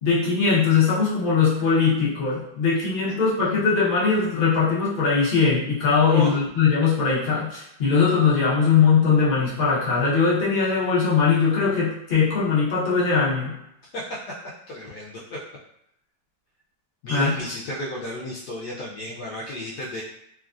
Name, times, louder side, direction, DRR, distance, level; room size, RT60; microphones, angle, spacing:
voice 1, 0.0-13.5 17.1-17.3, left 5 dB, 55° left, -7 dB, 0.6 m, -20 dB
voice 2, 6.0-6.4 13.9-14.4 14.7-15.4 17.0-20.0, left 1 dB, 70° left, -5 dB, 1.0 m, -33 dB
3.1 x 2.3 x 2.4 m, 0.78 s
omnidirectional pair, 2.1 m